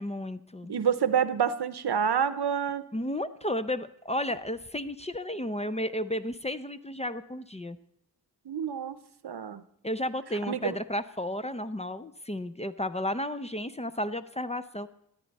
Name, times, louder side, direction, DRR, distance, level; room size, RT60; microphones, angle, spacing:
voice 1, 0.0-0.8 2.9-7.8 9.8-14.9, left 1 dB, 15° left, 11 dB, 0.5 m, -33 dB
voice 2, 0.7-2.8 8.5-9.0 9.2-9.6 10.5-10.7, right 7 dB, 75° right, 13 dB, 0.7 m, -27 dB
13.5 x 9.8 x 4.1 m, 0.74 s
wide cardioid pair, 70°, 39 cm